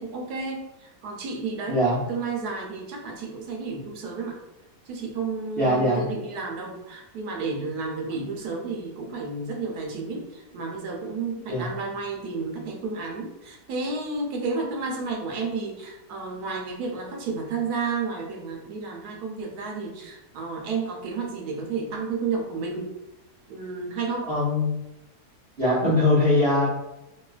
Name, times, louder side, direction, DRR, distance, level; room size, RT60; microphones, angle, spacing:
voice 1, 0.0-1.8 2.1-4.4 4.9-22.9 23.5-24.3, right 4 dB, 80° right, 1 dB, 1.1 m, -31 dB
voice 2, 1.7-2.0 5.6-6.1 11.5-11.7 24.3-24.7 25.6-26.7, left 1 dB, 45° right, -8 dB, 0.8 m, -21 dB
3.1 x 2.1 x 2.4 m, 0.91 s
omnidirectional pair, 1.7 m